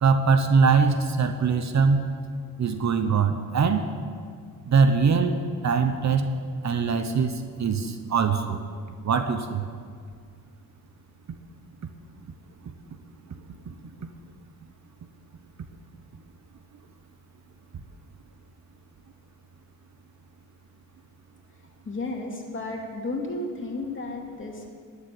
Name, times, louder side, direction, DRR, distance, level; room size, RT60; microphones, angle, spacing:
voice 1, 0.0-2.1 2.6-3.8 4.7-6.3 6.6-7.3 7.6-8.6 9.0-9.7 13.7-13.8, right 5 dB, 50° right, 8 dB, 0.9 m, -22 dB
voice 2, 21.9-24.7, left 2 dB, 35° left, 0 dB, 2.6 m, -33 dB
11.5 x 7.2 x 9.8 m, 2.1 s
cardioid pair, 75°, 36 cm